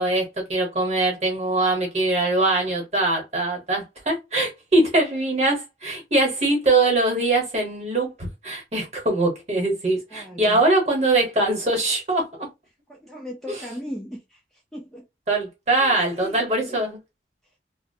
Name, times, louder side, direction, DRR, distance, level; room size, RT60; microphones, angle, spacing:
voice 1, 0.0-12.5 13.5-13.6 15.3-17.0, right 2 dB, 40° right, 1.0 m, -22 dB
voice 2, 10.1-10.6 12.9-14.4 14.7-15.0 15.8-16.8, equal, ahead, 0.4 m, -37 dB
2.5 x 2.0 x 2.6 m
head